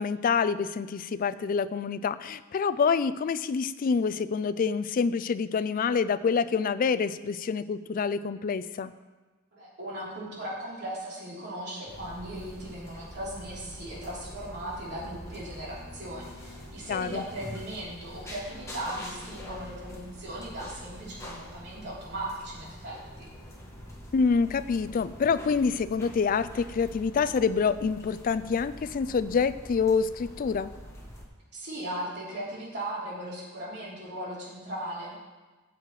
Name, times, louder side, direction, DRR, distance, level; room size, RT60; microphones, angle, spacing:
voice 1, 0.0-8.9 16.9-17.2 24.1-30.7, left 5 dB, 40° left, 14 dB, 0.3 m, -27 dB
voice 2, 9.5-23.3 31.5-35.1, right 1 dB, 55° right, -7 dB, 3.4 m, -38 dB
sound 1, 11.9-31.3, equal, 15° left, 1.3 m, -45 dB
13.5 x 7.6 x 3.2 m, 1.3 s
head